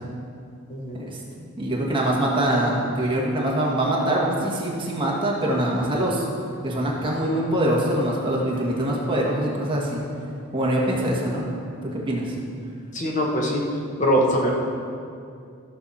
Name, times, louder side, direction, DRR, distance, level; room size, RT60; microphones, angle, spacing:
voice 1, 1.6-6.2 6.6-10.0 10.5-11.5 11.8-12.3, right 1 dB, 25° right, -4 dB, 1.6 m, -24 dB
voice 2, 12.9-13.6 14.0-14.5, equal, 35° left, -2 dB, 1.2 m, -22 dB
14.5 x 6.9 x 4.2 m, 2.4 s
head